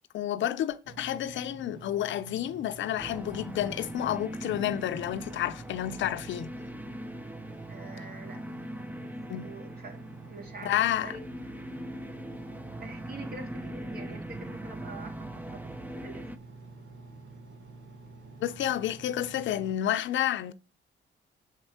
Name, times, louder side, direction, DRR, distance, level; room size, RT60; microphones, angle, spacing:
voice 1, 0.1-6.5 9.3-9.5 10.6-11.1 18.4-20.5, left 11 dB, 70° left, 0.6 m, -30 dB
Engine, 0.8-19.7, right 3 dB, 70° right, 1.5 m, -49 dB
sound 1, 3.0-16.4, right 1 dB, 10° right, 0.6 m, -41 dB
voice 2, 7.7-8.6 9.0-11.3 12.8-16.3, right 3 dB, 50° right, 2.2 m, -46 dB
7.2 x 4.6 x 5.7 m
cardioid pair, 90°, 20 cm